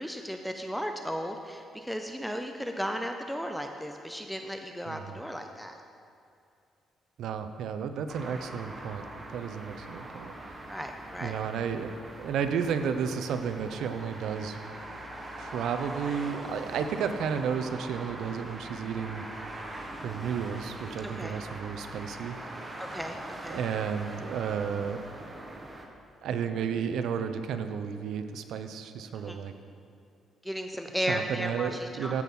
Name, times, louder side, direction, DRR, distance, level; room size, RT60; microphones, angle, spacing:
voice 1, 0.0-5.8 10.7-11.3 21.2-21.4 22.8-23.6 29.1-29.4 30.4-32.2, equal, ahead, 4 dB, 0.7 m, -35 dB
voice 2, 4.9-5.2 7.2-10.3 11.2-14.6 15.4-19.2 20.0-22.4 23.5-25.0 26.2-29.5 31.1-32.2, right 7 dB, 75° right, 9 dB, 0.7 m, -32 dB
sound 1, 8.1-25.9, right 1 dB, 25° right, 1.5 m, -42 dB
15.5 x 6.1 x 5.5 m, 2.5 s
cardioid pair, 90°, 0 cm